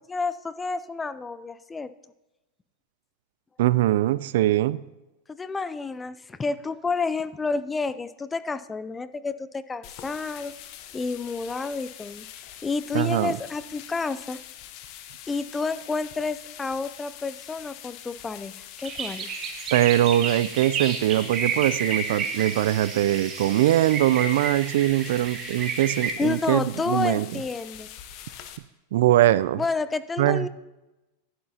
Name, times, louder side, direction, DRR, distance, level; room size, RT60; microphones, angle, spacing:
voice 1, 0.0-1.9 5.3-10.5 10.9-12.3 12.6-14.4 15.3-19.3 26.2-27.9 29.6-30.5, left 4 dB, 15° left, 15 dB, 0.4 m, -30 dB
voice 2, 3.6-4.8 12.9-13.4 19.7-27.3 28.9-29.6 30.2-30.5, right 14 dB, 70° right, 18 dB, 0.3 m, -22 dB
sound 1, 9.8-28.6, left 11 dB, 55° left, 0.8 m, -44 dB
sound 2, 18.8-26.1, right 5 dB, 35° right, 1.6 m, -31 dB
11.0 x 10.0 x 2.8 m, 1.0 s
hypercardioid pair, 115°, 0 cm